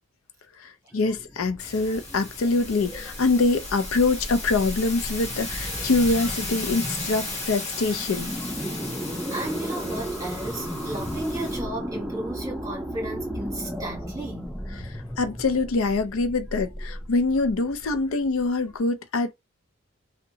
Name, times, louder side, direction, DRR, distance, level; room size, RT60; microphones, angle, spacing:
voice 1, 0.6-8.3 14.8-19.3, left 3 dB, 85° left, 0.5 m, -24 dB
sound 1, 0.9-18.7, equal, ahead, 0.5 m, -35 dB
sound 2, 1.6-11.6, left 2 dB, 30° left, 1.1 m, -36 dB
voice 2, 9.3-14.5, right 1 dB, 15° right, 1.3 m, -34 dB
2.7 x 2.2 x 2.7 m
head